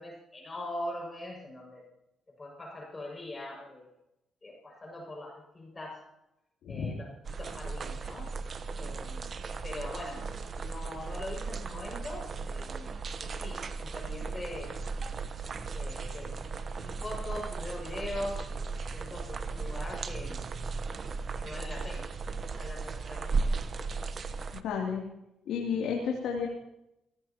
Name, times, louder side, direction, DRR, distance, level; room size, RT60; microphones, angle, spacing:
voice 1, 0.0-1.8 2.4-3.9 4.4-6.0 6.7-7.1 7.4-8.3 8.8-9.3 9.6-10.3 10.5-12.9 13.2-14.7 15.7-16.3 16.7-18.6 18.9-20.5 21.4-22.1 22.5-23.5, left 1 dB, 25° left, -1 dB, 6.4 m, -41 dB
sound 1, 7.2-24.6, right 4 dB, 45° right, 1.1 m, -36 dB
voice 2, 24.5-25.0 25.5-26.5, left 6 dB, 80° left, -1 dB, 3.0 m, -31 dB
24.5 x 17.5 x 3.0 m, 0.87 s
cardioid pair, 90°, 0 cm